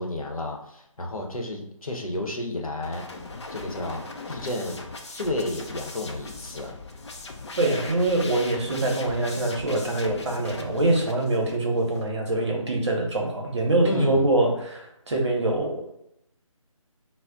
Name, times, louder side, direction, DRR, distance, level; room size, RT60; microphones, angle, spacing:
voice 1, 0.0-3.1 3.5-4.8 5.1-6.7 13.8-14.3, left 1 dB, 80° left, 0 dB, 0.8 m, -31 dB
sound 1, 2.8-12.1, left 3 dB, 55° left, 0.5 m, -40 dB
voice 2, 7.6-15.9, right 2 dB, 55° right, 0 dB, 0.8 m, -24 dB
2.4 x 2.0 x 3.7 m, 0.78 s
figure-of-eight pair, 155°, 18 cm